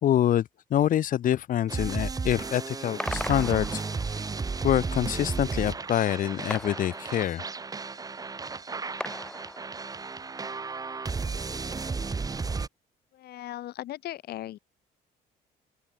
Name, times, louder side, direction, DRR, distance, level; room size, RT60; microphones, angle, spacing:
voice 1, 0.0-3.8 4.6-7.4, left 11 dB, 55° left, 1.0 m, -26 dB
sound 1, 1.7-12.7, right 4 dB, 20° right, 1.3 m, -33 dB
sound 2, 3.0-4.4 6.5-7.7 9.0-10.1, left 1 dB, 5° left, 3.8 m, -38 dB
voice 2, 13.1-14.6, left 14 dB, 70° left, 4.2 m, -38 dB
open air
cardioid pair, 110°, 17 cm